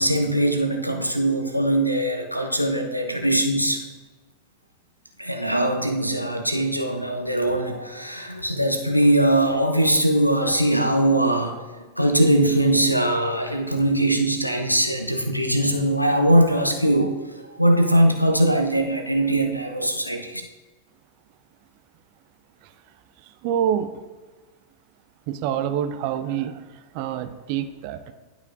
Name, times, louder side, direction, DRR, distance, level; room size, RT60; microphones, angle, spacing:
voice 1, 0.0-3.8 5.2-11.6 12.0-17.2 17.6-20.4, right 1 dB, 90° left, 4 dB, 0.8 m, -21 dB
voice 2, 23.4-23.9 25.3-26.6 26.9-28.1, right 9 dB, 45° right, 10 dB, 0.5 m, -26 dB
11.0 x 5.0 x 2.6 m, 1.3 s
figure-of-eight pair, 90°, 0 cm